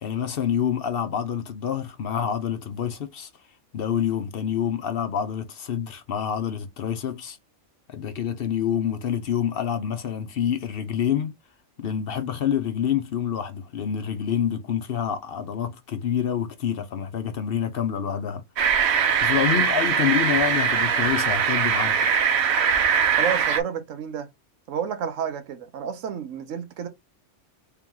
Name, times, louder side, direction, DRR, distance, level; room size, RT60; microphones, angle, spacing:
voice 1, 0.0-3.3 3.7-7.4 7.9-11.3 11.8-18.4 19.2-22.1, left 9 dB, 55° left, 0.7 m, -27 dB
sound 1, 18.6-23.6, right 7 dB, 65° right, 0.9 m, -21 dB
voice 2, 23.2-24.3 24.7-26.9, right 8 dB, 85° right, 1.2 m, -30 dB
3.4 x 2.9 x 3.6 m
omnidirectional pair, 1.3 m